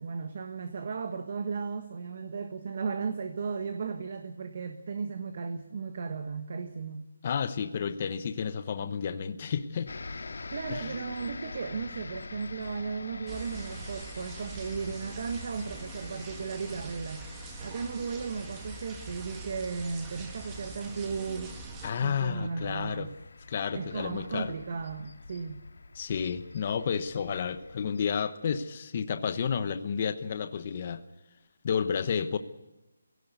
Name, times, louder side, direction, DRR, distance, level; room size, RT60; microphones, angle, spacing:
voice 1, 0.0-7.1 10.5-17.3 17.6-21.5 22.0-23.1 23.7-25.6, right 5 dB, 35° right, 8 dB, 1.4 m, -35 dB
voice 2, 7.2-9.9 10.7-11.0 21.8-23.1 23.5-24.5 25.9-31.0 31.6-32.4, left 7 dB, 25° left, 10 dB, 1.0 m, -31 dB
sound 1, 9.9-28.2, left 3 dB, 60° left, 2.0 m, -46 dB
sound 2, 13.3-21.9, right 3 dB, 10° right, 1.5 m, -43 dB
22.0 x 17.0 x 8.2 m, 1.0 s
hypercardioid pair, 175°, 0 cm